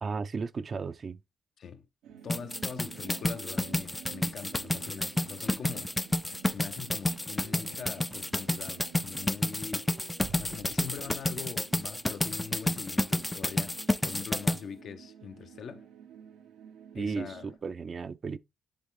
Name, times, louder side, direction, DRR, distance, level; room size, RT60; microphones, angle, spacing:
voice 1, 0.0-1.2 16.9-18.4, right 5 dB, 40° right, 0.6 m, -35 dB
sound 1, 2.0-17.6, right 8 dB, 85° right, 1.2 m, -51 dB
voice 2, 2.2-6.0 6.5-9.9 10.3-15.9 16.9-17.5, left 7 dB, 60° left, 0.9 m, -43 dB
sound 2, 2.3-14.6, left 1 dB, 10° left, 0.5 m, -30 dB
sound 3, 10.2-12.2 12.5-12.7, right 6 dB, 65° right, 1.4 m, -50 dB
10.0 x 3.6 x 3.7 m
cardioid pair, 90°, 0 cm